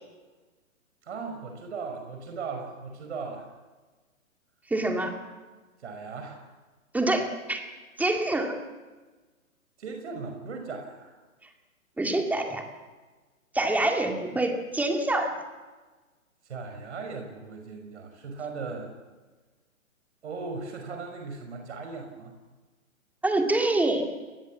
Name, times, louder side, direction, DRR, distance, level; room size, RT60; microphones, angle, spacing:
voice 1, 1.0-3.5 5.8-6.5 9.8-11.1 16.4-18.9 20.2-22.3, right 4 dB, 55° right, 4 dB, 5.3 m, -38 dB
voice 2, 4.7-5.1 6.9-7.7 8.0-8.6 12.0-12.6 13.5-15.3 23.2-24.0, right 2 dB, 5° right, 4 dB, 2.3 m, -26 dB
29.5 x 21.0 x 7.4 m, 1.3 s
figure-of-eight pair, 130°, 41 cm